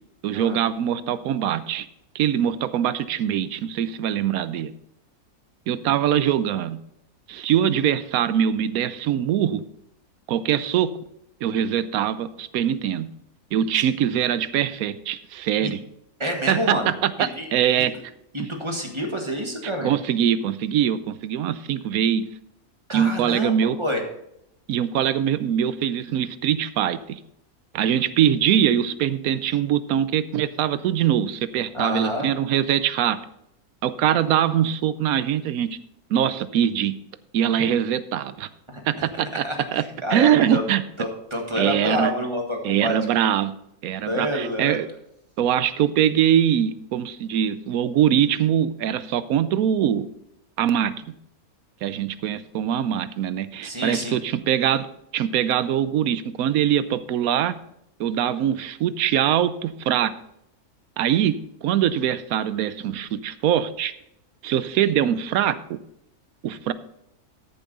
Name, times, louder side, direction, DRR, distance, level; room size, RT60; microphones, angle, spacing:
voice 1, 0.2-1.8 2.1-4.7 5.7-6.8 7.3-9.6 10.3-11.0 11.4-13.1 13.5-15.8 16.5-17.9 19.8-22.2 22.9-23.8 24.7-27.2 27.7-33.2 33.8-35.8 36.1-36.9 37.3-38.5 38.9-39.4 39.7-39.8 40.1-40.8 41.6-42.1 42.6-43.5 43.8-44.9 45.4-50.1 50.6-50.9 51.8-54.9 55.1-57.5 58.0-60.1 61.0-63.9 64.4-65.8 66.4-66.7, right 10 dB, 75° right, 14 dB, 1.1 m, -22 dB
voice 2, 16.2-16.9 17.3-17.5 17.8-17.9 18.3-19.9 22.9-24.0 31.7-32.3 38.7-40.6 41.0-43.0 44.1-44.8 53.6-54.2, equal, 20° right, 2 dB, 1.6 m, -28 dB
13.5 x 7.1 x 4.0 m, 0.79 s
omnidirectional pair, 1.6 m